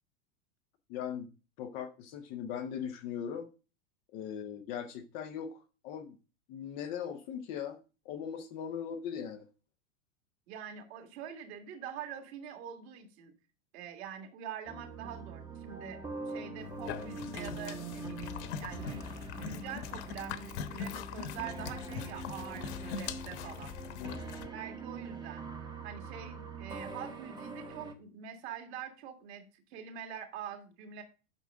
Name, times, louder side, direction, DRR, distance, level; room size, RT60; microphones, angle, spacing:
voice 1, 0.9-1.3 1.6-3.5 4.1-6.2 6.5-7.8 8.1-9.5 23.9-24.2, left 8 dB, 20° left, 0.3 m, -39 dB
voice 2, 10.5-13.3 13.7-19.0 19.3-23.7 24.5-25.5 25.8-31.0, right 8 dB, 55° right, 2.0 m, -45 dB
sound 1, 14.7-27.9, right 3 dB, 10° right, 0.7 m, -43 dB
sound 2, 16.6-24.5, left 8 dB, 55° left, 1.0 m, -42 dB
9.0 x 6.1 x 3.6 m
supercardioid pair, 150°, 39 cm